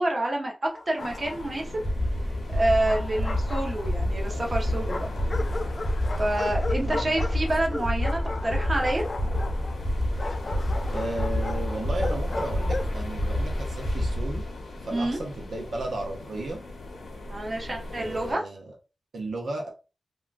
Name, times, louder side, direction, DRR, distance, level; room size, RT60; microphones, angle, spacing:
voice 1, 0.0-1.9 2.5-5.1 6.2-9.0 14.9-15.2 17.3-18.4, right 1 dB, 35° right, 0 dB, 0.8 m, -28 dB
Bark, 0.7-1.6 2.6-4.2 4.9-13.0, left 3 dB, 40° left, 0.3 m, -36 dB
sound 1, 1.0-18.3, left 2 dB, 85° left, 0.8 m, -40 dB
sound 2, 1.8-14.5, equal, 10° left, 1.0 m, -28 dB
voice 2, 6.8-7.2 10.9-14.4 14.8-16.6 18.0-18.8 19.1-19.7, right 2 dB, 70° right, 1 dB, 0.6 m, -34 dB
3.6 x 2.2 x 2.5 m, 0.31 s
wide cardioid pair, 105°, 0 cm